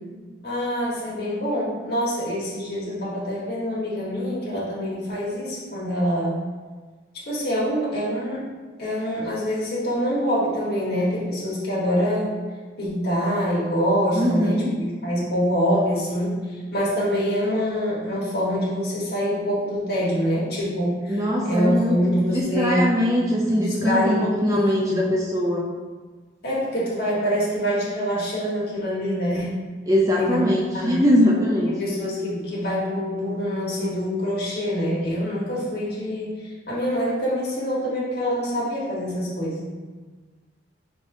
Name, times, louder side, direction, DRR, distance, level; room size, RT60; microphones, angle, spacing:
voice 1, 0.4-6.4 7.1-8.5 8.8-12.4 12.8-16.4 16.7-21.2 21.4-22.9 23.5-25.0 26.4-29.5 30.1-30.4 30.7-31.0 31.6-39.6, equal, 60° left, -6 dB, 1.3 m, -25 dB
voice 2, 14.1-14.8 21.1-25.7 29.9-31.7, equal, 20° right, -4 dB, 0.4 m, -22 dB
5.3 x 3.3 x 2.6 m, 1.4 s
head